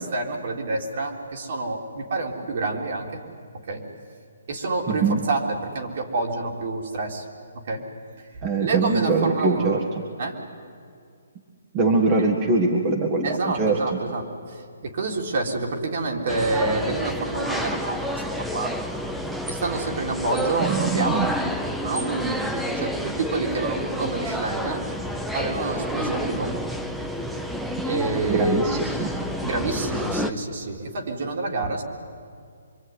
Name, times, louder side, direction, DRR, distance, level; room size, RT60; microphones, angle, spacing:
voice 1, 0.0-3.2 3.7-3.8 4.5-7.2 7.5-7.8 8.2-8.3 8.6-9.8 10.2-10.4 12.1-12.3 13.2-18.7 19.5-21.3 21.8-24.8 25.3-26.6 27.8-28.7 29.4-31.8, right 3 dB, 55° right, 1 dB, 3.6 m, -28 dB
voice 2, 4.9-5.2 8.4-9.8 11.7-13.8 20.6-21.3 28.3-29.1, right 3 dB, 25° right, 2 dB, 1.8 m, -22 dB
sound 1, 16.3-30.3, equal, ahead, 0.9 m, -29 dB
25.0 x 23.5 x 9.7 m, 2.3 s
hypercardioid pair, 160°, 0 cm